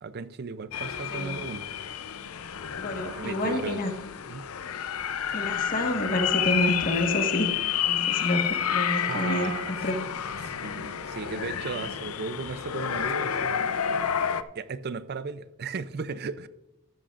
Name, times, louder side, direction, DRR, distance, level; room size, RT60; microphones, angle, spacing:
voice 1, 0.0-1.7 3.0-3.8 4.3-4.4 9.1-9.7 10.4-13.6 14.6-16.5, right 4 dB, 50° right, 0.5 m, -36 dB
sound 1, 0.7-14.4, left 8 dB, 85° left, 0.6 m, -30 dB
voice 2, 1.1-1.5 2.8-3.9 5.3-7.5 7.9-9.5 9.8-10.0, left 1 dB, 40° left, 1.5 m, -28 dB
14.0 x 12.5 x 2.5 m
head